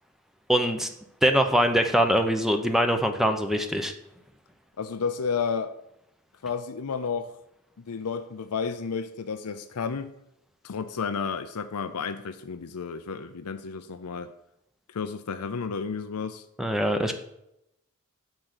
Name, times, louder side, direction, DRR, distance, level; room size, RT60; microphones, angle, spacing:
voice 1, 0.5-0.9 1.2-3.9 16.6-17.1, equal, ahead, 6 dB, 0.7 m, -23 dB
voice 2, 4.8-5.7 6.4-7.3 7.8-10.1 10.6-14.3 14.9-16.4, left 5 dB, 90° left, 10 dB, 0.6 m, -32 dB
7.6 x 6.1 x 6.6 m, 0.81 s
head